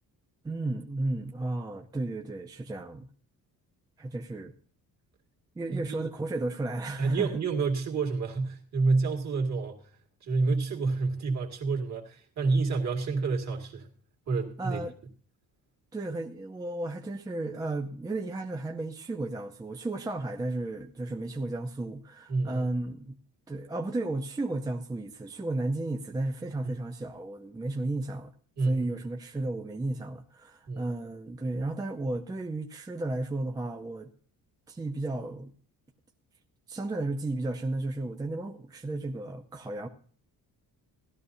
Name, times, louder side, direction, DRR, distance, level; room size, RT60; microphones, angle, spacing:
voice 1, 0.4-3.1 4.0-4.5 5.6-7.3 14.6-14.9 15.9-23.2 23.5-28.3 28.7-34.1 34.7-35.5 36.7-39.9, right 2 dB, 10° right, 0.5 m, -33 dB
voice 2, 7.0-9.8 10.2-13.9 14.3-14.8 22.3-22.7 26.6-26.8 28.6-28.9 30.7-30.9, right 4 dB, 50° right, 2.1 m, -28 dB
16.5 x 12.5 x 2.7 m
cardioid pair, 175°, 36 cm